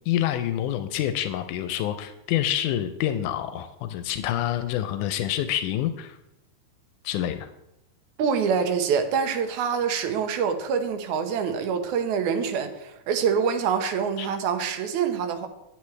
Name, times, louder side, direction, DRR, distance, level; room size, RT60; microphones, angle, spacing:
voice 1, 0.1-6.2 7.0-7.5 14.2-14.3, left 11 dB, 90° left, 2.1 m, -27 dB
voice 2, 8.2-15.5, right 6 dB, 80° right, 2.1 m, -25 dB
9.4 x 8.2 x 3.2 m
omnidirectional pair, 3.5 m